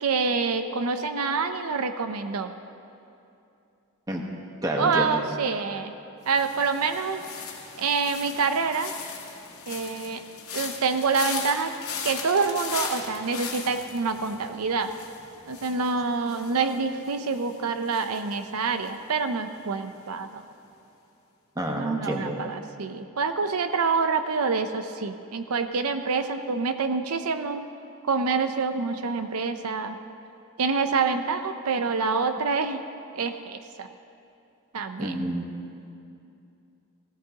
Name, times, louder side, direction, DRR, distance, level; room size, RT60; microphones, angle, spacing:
voice 1, 0.0-2.5 4.8-5.9 6.3-7.2 7.8-8.9 9.7-10.2 10.5-11.7 12.0-14.9 15.5-20.4 21.8-27.7 28.0-30.0 30.6-32.8 33.1-33.9 34.7-35.1, right 4 dB, 85° right, 8 dB, 0.6 m, -26 dB
voice 2, 4.6-5.2 21.6-22.4 35.0-35.5, right 1 dB, 15° right, 1 dB, 1.2 m, -28 dB
sound 1, 6.3-19.3 19.6-20.0, left 6 dB, 70° left, 1.8 m, -39 dB
19.0 x 16.0 x 2.9 m, 2.7 s
head